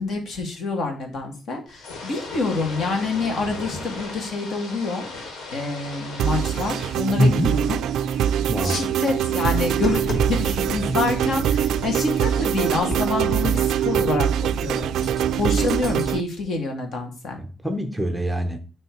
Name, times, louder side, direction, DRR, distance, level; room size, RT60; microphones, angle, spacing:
voice 1, 0.0-7.8 8.6-14.9 15.4-17.4, left 3 dB, 55° left, 1.9 m, -27 dB
sound 1, 1.7-12.8, left 3 dB, 85° left, 2.2 m, -39 dB
sound 2, 6.2-16.2, right 10 dB, 80° right, 0.3 m, -23 dB
voice 2, 7.2-7.5 8.5-8.9 10.9-11.0 17.4-18.6, equal, 5° right, 0.6 m, -23 dB
Tap, 9.4-16.1, equal, 35° left, 2.5 m, -34 dB
9.0 x 3.2 x 4.6 m
cardioid pair, 145°, 0 cm